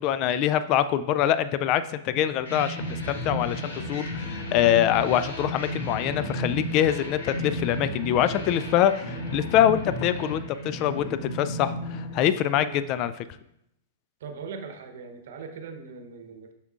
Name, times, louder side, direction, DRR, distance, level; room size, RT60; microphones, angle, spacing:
voice 1, 0.0-3.6 3.9-13.1, left 11 dB, 40° left, 13 dB, 0.3 m, -24 dB
sound 1, 2.4-13.0, left 1 dB, 75° left, 1.4 m, -33 dB
voice 2, 14.2-16.5, right 5 dB, 65° right, 7 dB, 0.9 m, -40 dB
7.1 x 5.8 x 2.4 m, 0.79 s
hypercardioid pair, 105°, 0 cm